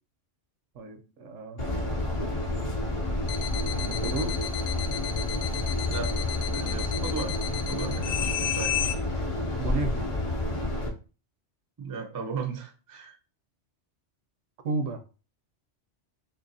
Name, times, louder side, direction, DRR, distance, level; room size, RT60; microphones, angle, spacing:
voice 1, 0.7-2.1 3.8-4.4 9.6-10.1 14.6-15.0, right 3 dB, 85° right, 1.0 m, -33 dB
sound 1, 1.6-10.9, left 2 dB, 35° left, 0.5 m, -29 dB
sound 2, 3.3-9.0, left 11 dB, 80° left, 0.9 m, -33 dB
voice 2, 6.5-8.9 11.8-13.2, right 5 dB, 35° right, 0.3 m, -36 dB
2.8 x 2.8 x 3.9 m
omnidirectional pair, 1.2 m